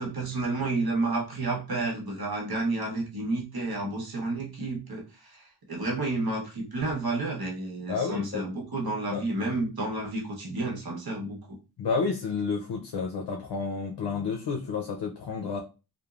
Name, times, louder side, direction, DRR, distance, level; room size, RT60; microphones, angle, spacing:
voice 1, 0.0-11.6, right 2 dB, 60° right, 0.9 m, -31 dB
voice 2, 7.9-8.4 9.1-9.2 11.8-15.6, left 5 dB, 80° left, 0.5 m, -30 dB
3.0 x 2.1 x 2.4 m
wide cardioid pair, 80°, 41 cm